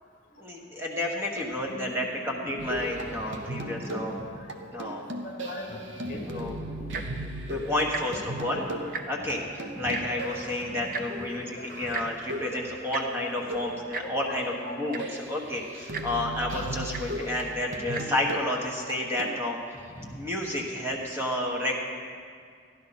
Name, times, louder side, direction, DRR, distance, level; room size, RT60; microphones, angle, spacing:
voice 1, 0.4-4.1 4.7-5.0 6.0-6.6 7.4-8.6 9.1-21.8, left 1 dB, 15° right, -1 dB, 1.3 m, -31 dB
voice 2, 1.6-3.0 3.5-4.5 5.2-6.9 8.0-8.9 10.6-11.8 13.6-13.7 14.0-14.9 18.0-18.1, left 2 dB, 45° left, 3 dB, 1.2 m, -43 dB
sound 1, 2.6-19.4, right 1 dB, 75° right, 0.9 m, -37 dB
Tick-tock, 6.8-7.2 7.9-8.0 8.4-8.5 8.8-9.3 9.9-10.0 10.9-11.1 11.9-12.1 12.9-13.0 13.9-14.1 14.6-14.7 14.9-15.2 15.9-16.1 16.9-17.0 17.8-18.0 18.7-18.8, right 5 dB, 50° right, 0.7 m, -34 dB
13.5 x 11.0 x 4.2 m, 2.1 s
head